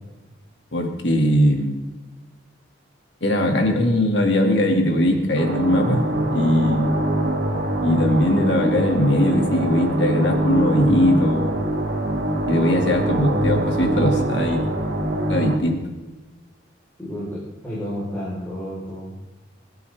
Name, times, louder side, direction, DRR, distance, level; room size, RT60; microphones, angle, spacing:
voice 1, 0.7-1.8 3.2-6.9 7.8-11.5 12.5-14.6 15.3-15.8, left 1 dB, 65° left, 3 dB, 2.3 m, -20 dB
sound 1, 5.4-15.6, right 1 dB, 65° right, 2.6 m, -23 dB
voice 2, 17.0-19.2, equal, 10° left, -9 dB, 4.0 m, -31 dB
22.5 x 10.5 x 3.5 m, 1.2 s
head